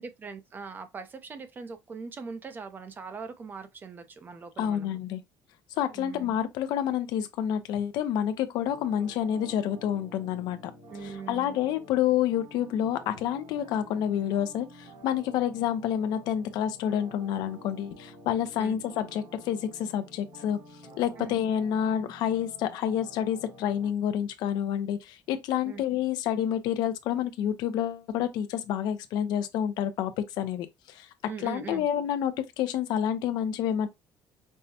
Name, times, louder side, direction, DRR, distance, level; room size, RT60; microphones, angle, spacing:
voice 1, 0.0-5.0 5.9-6.3 10.9-11.6 18.6-18.8 21.2-21.4 25.6-25.8 31.3-31.9, right 5 dB, 25° right, 0.6 m, -41 dB
voice 2, 4.6-5.2 5.8-10.6 11.0-20.6 21.0-31.1 31.4-33.9, left 10 dB, 75° left, 0.6 m, -28 dB
sound 1, 8.6-23.9, equal, 70° right, 2.8 m, -50 dB
5.4 x 2.2 x 2.7 m
cardioid pair, 150°, 7 cm